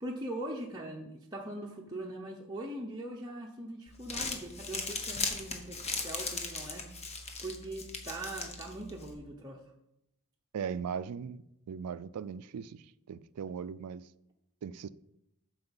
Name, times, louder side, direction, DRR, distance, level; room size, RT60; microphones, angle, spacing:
voice 1, 0.0-6.9 7.4-9.6, right 1 dB, 20° right, 0.8 m, -41 dB
Crumpling crinkling, 3.9-9.1, left 4 dB, 30° left, 1.1 m, -38 dB
voice 2, 10.5-14.1 14.6-14.9, right 7 dB, 85° right, 0.4 m, -39 dB
7.7 x 4.8 x 7.1 m
head